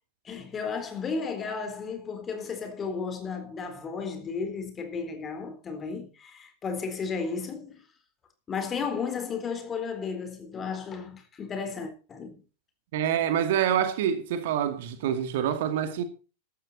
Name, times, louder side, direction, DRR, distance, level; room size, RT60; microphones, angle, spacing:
voice 1, 0.2-7.8 8.5-12.4, left 5 dB, 20° left, 3.9 m, -34 dB
voice 2, 12.9-16.0, right 9 dB, 55° right, 2.2 m, -26 dB
15.0 x 12.0 x 4.2 m
figure-of-eight pair, 90°, 0 cm